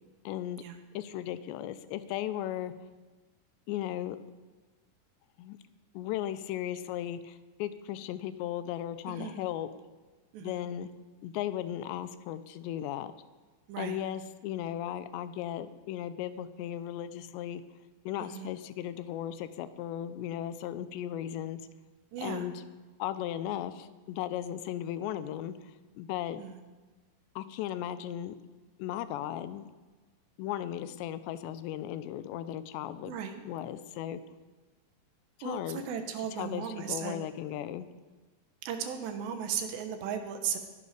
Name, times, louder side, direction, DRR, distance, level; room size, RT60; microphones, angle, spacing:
voice 1, 0.3-0.6 0.9-2.7 3.7-4.2 5.4-5.6 5.9-9.7 10.4-10.9 11.2-13.1 13.8-17.6 18.1-21.6 22.2-22.6 23.0-25.5 26.0-26.4 27.4-28.3 28.8-29.7 30.4-33.2 33.5-34.2 35.4-35.9 36.4-37.9, left 11 dB, 85° left, 13 dB, 2.9 m, -36 dB
voice 2, 9.1-9.4 10.3-10.6 13.7-14.0 18.2-18.5 22.1-22.5 26.4-26.6 33.1-33.4 35.4-37.3 38.6-40.6, right 8 dB, 80° right, 7 dB, 3.4 m, -36 dB
20.0 x 11.0 x 5.0 m, 1.3 s
omnidirectional pair, 5.0 m